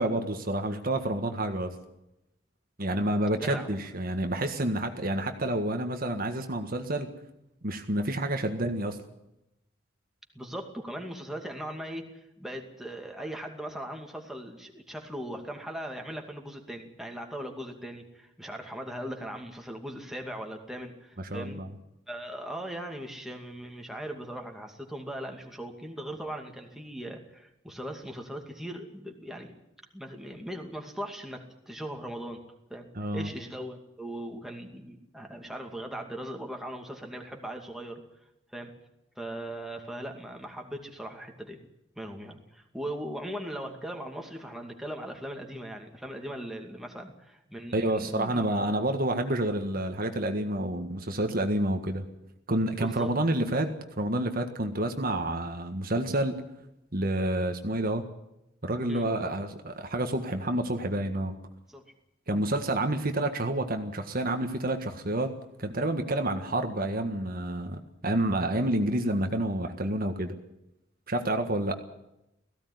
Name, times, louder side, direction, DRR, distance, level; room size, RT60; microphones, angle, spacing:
voice 1, 0.0-1.7 2.8-7.1 7.6-9.0 21.2-21.7 32.9-33.3 47.7-52.0 52.5-56.4 56.9-58.1 58.6-61.3 62.3-65.3 65.6-70.4 71.1-71.8, right 1 dB, 50° right, 6 dB, 1.7 m, -29 dB
voice 2, 3.4-3.7 10.3-21.6 22.1-29.5 29.9-32.4 32.7-32.9 33.1-38.0 38.5-38.7 39.2-41.6 42.0-48.5 52.8-53.1 58.9-59.0 61.7-61.8, right 1 dB, ahead, 2 dB, 2.4 m, -39 dB
17.5 x 16.0 x 9.5 m, 0.86 s
head